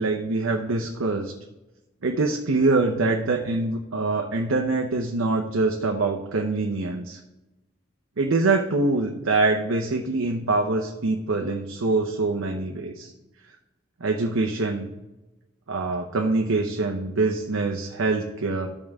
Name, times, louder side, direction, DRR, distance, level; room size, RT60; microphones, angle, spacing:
voice 1, 0.0-1.3 2.0-7.2 8.2-13.1 14.0-14.9 15.7-18.7, right 3 dB, 90° right, 2 dB, 0.7 m, -24 dB
13.0 x 5.4 x 3.5 m, 1.0 s
head